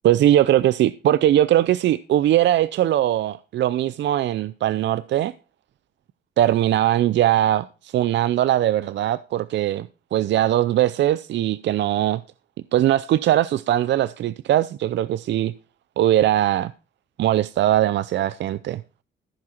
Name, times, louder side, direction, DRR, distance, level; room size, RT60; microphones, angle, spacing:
voice 1, 0.0-5.3 6.4-12.2 12.7-15.5 16.0-16.7 17.2-18.8, right 12 dB, 65° right, 0.5 m, -20 dB
14.5 x 7.6 x 4.4 m
cardioid pair, 90°, 20 cm